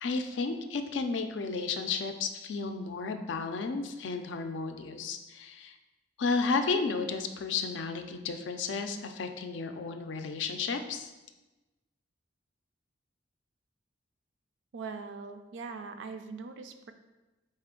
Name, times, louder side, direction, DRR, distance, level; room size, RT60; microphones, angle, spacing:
voice 1, 0.0-5.8 6.2-11.1, left 4 dB, 70° left, 7 dB, 0.4 m, -33 dB
voice 2, 14.7-16.9, right 4 dB, 70° right, 8 dB, 0.4 m, -41 dB
4.2 x 3.3 x 3.6 m, 1.1 s
head